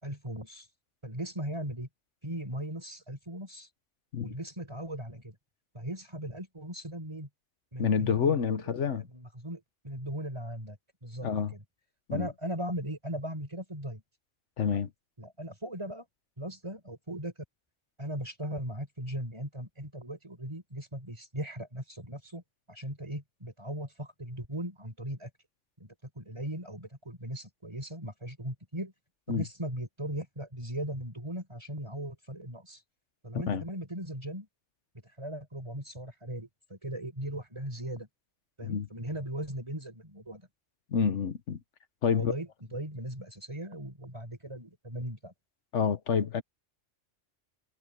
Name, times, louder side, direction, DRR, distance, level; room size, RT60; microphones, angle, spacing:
voice 1, 0.0-0.7 1.0-1.9 2.2-3.7 4.2-5.3 5.7-7.3 7.7-11.6 12.1-14.0 14.7-14.9 15.2-16.1 16.4-17.3 18.0-22.4 22.7-25.3 25.8-28.9 29.3-32.8 33.2-34.5 35.2-38.1 38.6-40.4 42.1-45.3, right 1 dB, 25° right, 5.0 m, -38 dB
voice 2, 7.8-9.0 11.2-11.5 12.1-12.3 14.6-14.9 29.3-29.4 33.5-33.6 38.6-38.9 40.9-41.6 42.0-42.3 45.7-46.4, left 7 dB, 80° left, 1.3 m, -28 dB
omnidirectional pair, 1.2 m